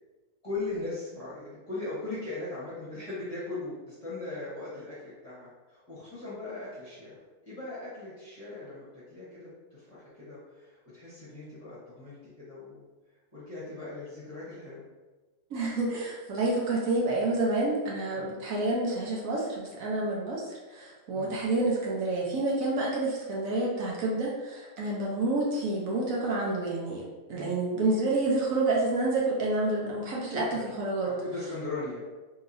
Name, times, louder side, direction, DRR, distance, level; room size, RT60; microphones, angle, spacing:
voice 1, 0.4-7.2 7.4-8.8 9.1-12.2 12.5-12.8 13.3-14.8 18.1-18.3 21.1-21.3 27.3-27.6 30.3-30.7 31.0-32.1, left 2 dB, 30° left, -11 dB, 0.9 m, -39 dB
voice 2, 15.5-31.1, right 2 dB, 70° right, -3 dB, 1.0 m, -29 dB
3.0 x 2.7 x 2.5 m, 1.2 s
omnidirectional pair, 1.6 m